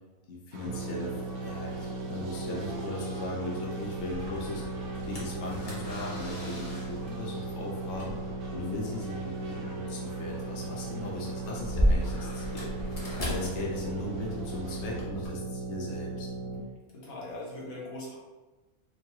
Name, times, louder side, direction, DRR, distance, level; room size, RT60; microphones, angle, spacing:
voice 1, 0.3-4.8 5.1-8.2 8.5-12.7 13.2-16.3, left 2 dB, 60° left, -3 dB, 1.0 m, -38 dB
sound 1, 0.5-15.0, right 2 dB, 85° right, 1.2 m, -45 dB
sound 2, 0.7-16.6, right 2 dB, 65° right, 0.9 m, -37 dB
sound 3, 4.1-15.3, equal, 30° left, 0.8 m, -35 dB
voice 2, 16.9-18.2, left 1 dB, 75° left, -4 dB, 1.5 m, -40 dB
4.5 x 2.9 x 2.8 m, 1.2 s
omnidirectional pair, 1.5 m